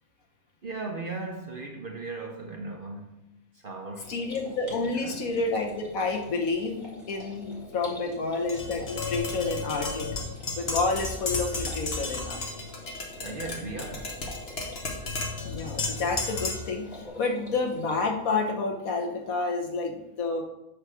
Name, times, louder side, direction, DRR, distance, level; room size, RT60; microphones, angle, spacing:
voice 1, 0.6-3.3 3.6-4.2 4.8-5.2 13.2-14.2, right 3 dB, 45° right, 0.8 m, -37 dB
sound 1, 4.0-18.1, left 2 dB, 30° left, 2.0 m, -46 dB
voice 2, 4.1-10.1 10.6-12.4 15.4-20.4, left 3 dB, 70° left, 1.5 m, -29 dB
Tap, 8.5-16.8, left 3 dB, 45° left, 1.3 m, -33 dB
8.2 x 3.2 x 6.2 m
omnidirectional pair, 1.6 m